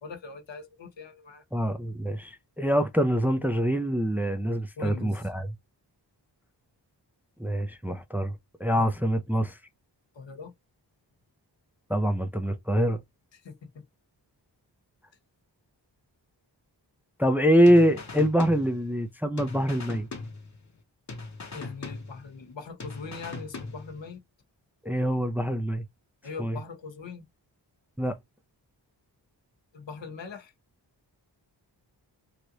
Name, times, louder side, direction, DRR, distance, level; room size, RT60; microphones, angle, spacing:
voice 1, 0.0-1.4 4.8-5.3 8.7-8.9 10.1-10.5 13.3-13.8 21.5-24.2 26.2-27.2 29.7-30.5, left 4 dB, 80° left, 1.1 m, -41 dB
voice 2, 1.5-5.4 7.4-8.3 8.6-9.5 11.9-13.0 17.2-20.1 24.9-25.8 26.4-26.6 28.0-28.2, equal, 5° right, 0.5 m, -24 dB
sound 1, 17.7-19.1 19.4-20.8 21.1-22.5 22.8-24.1, left 3 dB, 40° left, 0.9 m, -40 dB
3.3 x 2.5 x 2.9 m
wide cardioid pair, 60°, 44 cm